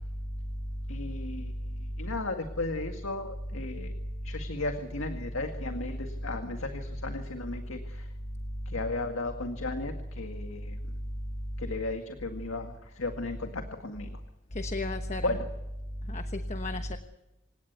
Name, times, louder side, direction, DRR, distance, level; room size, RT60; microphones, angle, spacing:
voice 1, 0.9-1.5 2.0-3.9 4.2-8.1 8.7-10.8 11.6-14.2 15.2-15.4, left 2 dB, 85° left, 5 dB, 2.0 m, -35 dB
voice 2, 14.5-15.4 16.1-17.0, left 1 dB, 35° left, 7 dB, 1.2 m, -33 dB
27.0 x 17.5 x 8.3 m, 0.95 s
head